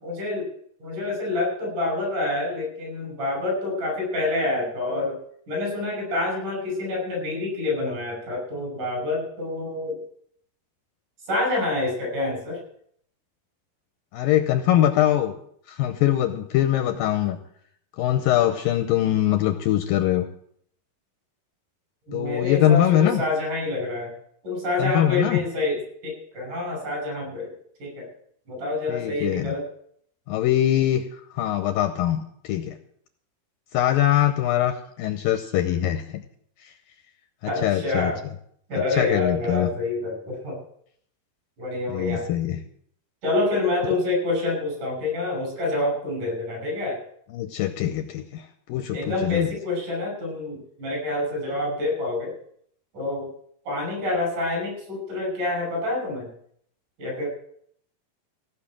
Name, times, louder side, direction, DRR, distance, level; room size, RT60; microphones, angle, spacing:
voice 1, 0.0-0.5 0.8-5.2 5.5-10.0 11.3-12.6 22.1-24.1 24.4-27.5 27.8-28.1 28.5-29.6 37.5-38.2 38.7-40.6 41.6-42.3 43.2-47.0 48.9-52.4 52.9-53.3 53.7-56.3 57.0-57.3, left 2 dB, 50° right, 1 dB, 7.3 m, -27 dB
voice 2, 14.1-15.3 15.7-17.4 18.0-20.3 22.1-23.2 24.8-25.4 28.9-29.5 30.3-31.0 31.3-32.8 33.7-36.2 36.6-36.7 37.4-38.1 38.9-39.7 41.9-42.6 47.3-49.5, left 12 dB, 80° left, 7 dB, 2.2 m, -22 dB
16.5 x 6.5 x 8.7 m, 0.66 s
omnidirectional pair, 4.7 m